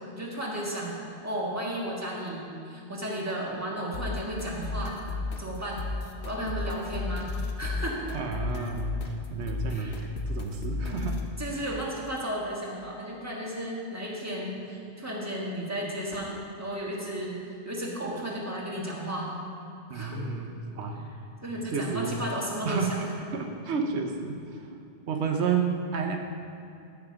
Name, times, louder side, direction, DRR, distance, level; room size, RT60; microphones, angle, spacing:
voice 1, 0.2-1.0 1.2-5.0 5.4-5.8 6.2-7.3 7.6-8.0 9.7-9.9 10.8-11.0 11.4-19.3 19.9-20.2 21.4-23.0, equal, 15° right, -3 dB, 1.4 m, -34 dB
sound 1, 3.9-11.3, left 3 dB, 75° left, 1.1 m, -34 dB
voice 2, 8.1-11.2 19.9-21.1 21.6-22.2 22.6-24.7 25.1-26.2, right 5 dB, 80° right, 3 dB, 1.0 m, -31 dB
12.5 x 4.6 x 5.8 m, 2.6 s
omnidirectional pair, 1.1 m